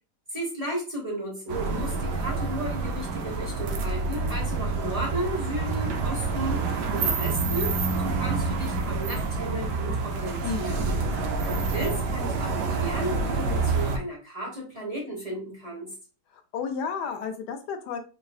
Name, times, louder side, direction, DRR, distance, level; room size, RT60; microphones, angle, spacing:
voice 1, 0.3-10.9 11.5-15.9, right 1 dB, 25° right, -4 dB, 1.2 m, -34 dB
sound 1, 1.5-14.0, right 4 dB, 85° right, 1.2 m, -27 dB
voice 2, 10.4-11.0 16.3-18.0, left 6 dB, 80° left, 7 dB, 1.2 m, -32 dB
3.4 x 3.2 x 2.3 m, 0.35 s
omnidirectional pair, 1.8 m